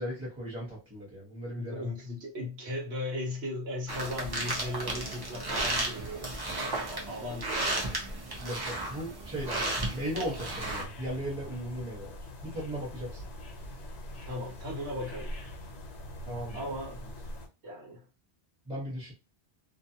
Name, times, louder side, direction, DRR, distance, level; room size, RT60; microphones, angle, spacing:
voice 1, 0.0-1.9 8.4-12.2 12.4-13.2 16.3-16.7 18.6-19.1, equal, 5° right, 1.0 m, -37 dB
voice 2, 1.6-7.9 14.3-15.4 16.5-17.0 17.6-18.0, left 1 dB, 75° right, 1.1 m, -37 dB
sound 1, 3.9-10.8, right 2 dB, 25° right, 0.6 m, -34 dB
sound 2, 10.3-17.5, equal, 70° left, 1.0 m, -43 dB
2.5 x 2.2 x 2.7 m
omnidirectional pair, 1.1 m